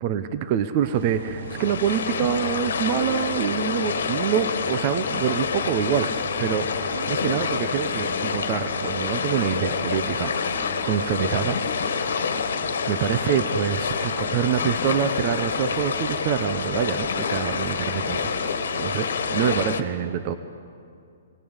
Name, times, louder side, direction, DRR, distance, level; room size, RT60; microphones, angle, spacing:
voice 1, 0.0-6.1 6.4-10.3 10.8-11.6 12.9-18.5 18.8-20.3, right 9 dB, 40° right, 11 dB, 0.8 m, -26 dB
sound 1, 0.8-19.8, right 7 dB, 60° right, 1.0 m, -39 dB
sound 2, 1.4-19.8, left 6 dB, 75° left, 1.5 m, -27 dB
Bowed string instrument, 6.9-11.3, right 1 dB, 20° right, 1.7 m, -44 dB
20.5 x 17.0 x 8.1 m, 2.4 s
hypercardioid pair, 140°, 0 cm